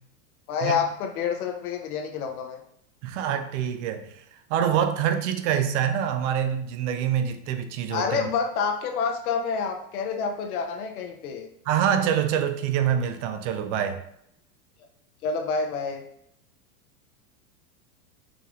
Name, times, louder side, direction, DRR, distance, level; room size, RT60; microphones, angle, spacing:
voice 1, 0.5-2.6 7.9-11.5 15.2-16.0, left 5 dB, 75° left, 0.8 m, -28 dB
voice 2, 3.0-4.1 4.5-8.3 11.7-14.0, right 9 dB, 55° right, 0.7 m, -25 dB
5.1 x 3.5 x 2.4 m
supercardioid pair, 130°, 44 cm